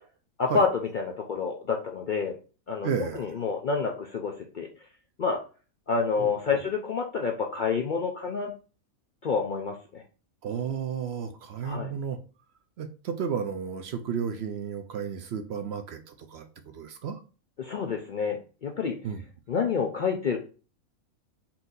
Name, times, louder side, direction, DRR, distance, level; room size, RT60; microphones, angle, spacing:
voice 1, 0.4-2.4 2.7-2.9 3.1-4.7 5.2-5.4 5.9-8.5 9.2-10.0 11.6-11.9 17.6-19.0 19.5-20.4, left 5 dB, 60° left, 1 dB, 0.5 m, -28 dB
voice 2, 2.8-3.3 6.2-6.3 10.4-12.2 12.8-16.4 16.7-17.2 19.0-19.2, right 7 dB, 65° right, 7 dB, 0.7 m, -32 dB
4.3 x 2.7 x 3.8 m, 0.35 s
omnidirectional pair, 1.5 m